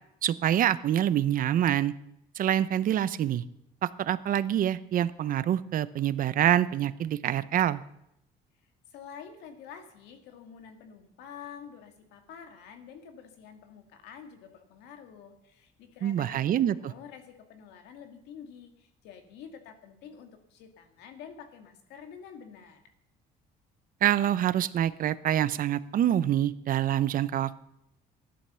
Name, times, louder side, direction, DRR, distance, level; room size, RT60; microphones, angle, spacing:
voice 1, 0.2-1.9 2.4-3.4 3.8-7.8 16.0-16.9 24.0-27.6, right 11 dB, 55° right, 16 dB, 0.8 m, -26 dB
voice 2, 8.9-22.8, left 7 dB, 85° left, 6 dB, 2.1 m, -48 dB
15.0 x 11.5 x 6.9 m, 0.80 s
cardioid pair, 110°, 17 cm